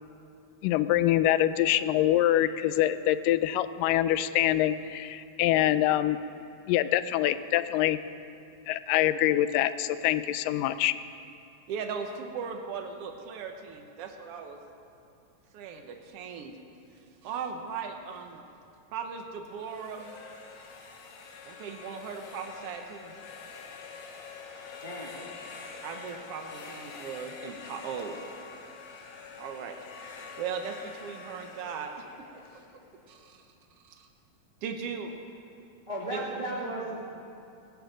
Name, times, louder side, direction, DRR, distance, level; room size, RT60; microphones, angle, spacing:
voice 1, 0.6-6.2 6.7-8.0 8.7-10.9, left 13 dB, 80° left, 13 dB, 2.1 m, -25 dB
voice 2, 11.7-14.6 15.5-16.6 17.2-18.4 18.9-20.1 21.5-23.1 25.8-28.2 29.0-29.8 30.1-31.9 32.2-32.3 32.5-32.6 33.1-33.4 33.8-34.1 34.6-35.1 36.1-36.2, right 6 dB, 85° right, 4 dB, 1.3 m, -38 dB
sound 1, 19.5-33.3, left 4 dB, 60° left, 2.3 m, -46 dB
voice 3, 35.9-37.0, right 1 dB, 15° right, -5 dB, 1.6 m, -34 dB
20.5 x 10.5 x 5.2 m, 2.7 s
omnidirectional pair, 4.0 m